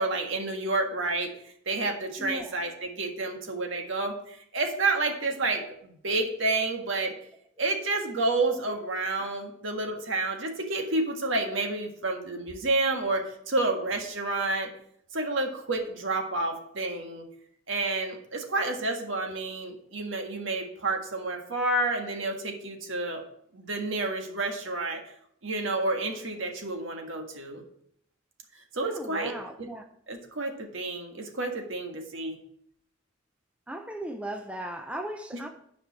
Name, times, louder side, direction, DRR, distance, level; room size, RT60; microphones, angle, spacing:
voice 1, 0.0-7.2 7.6-14.7 15.1-17.3 17.7-23.2 23.5-25.0 25.4-27.6 28.7-29.7 30.1-32.4, right 2 dB, 70° right, 1.7 m, -30 dB
voice 2, 2.2-2.5 8.7-8.8 28.8-29.8 33.7-35.5, right 1 dB, 5° right, 0.6 m, -37 dB
10.0 x 5.3 x 6.0 m
head